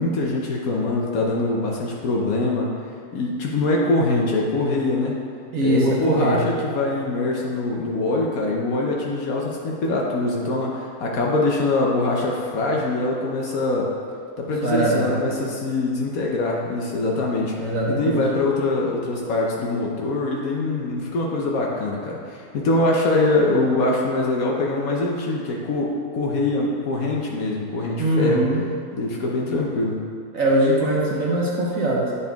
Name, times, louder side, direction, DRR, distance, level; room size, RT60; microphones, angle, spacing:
voice 1, 0.0-2.7 3.1-5.2 5.6-13.9 14.4-17.5 17.9-28.4 28.9-29.9, left 2 dB, 70° left, -2 dB, 1.1 m, -23 dB
voice 2, 5.5-6.6 14.6-15.2 17.6-18.2 28.0-28.6 30.3-32.2, right 1 dB, 65° right, -4 dB, 1.3 m, -21 dB
9.2 x 4.1 x 3.4 m, 2.2 s
omnidirectional pair, 1.6 m